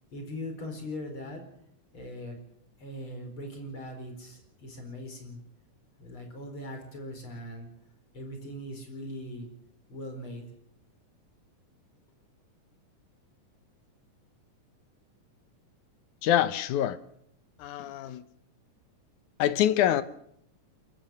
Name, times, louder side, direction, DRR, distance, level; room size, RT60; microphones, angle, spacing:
voice 1, 0.1-1.4 1.9-2.4 2.8-5.4 6.0-7.7 8.1-9.5 9.9-10.4, left 1 dB, 40° left, 5.2 m, -40 dB
voice 2, 16.2-17.0 17.6-18.2 19.4-20.0, left 11 dB, 75° left, 2.4 m, -25 dB
28.5 x 14.5 x 6.6 m
omnidirectional pair, 3.7 m